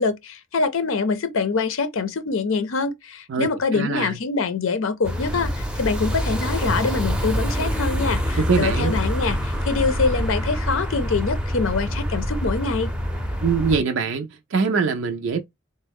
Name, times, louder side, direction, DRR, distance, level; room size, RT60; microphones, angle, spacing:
voice 1, 0.0-12.9, left 4 dB, 80° left, 0.6 m, -24 dB
voice 2, 3.3-4.2 8.3-8.9 13.4-15.4, right 5 dB, 70° right, 0.4 m, -23 dB
sound 1, 5.0-13.8, equal, 5° right, 0.5 m, -25 dB
3.7 x 2.1 x 3.4 m
head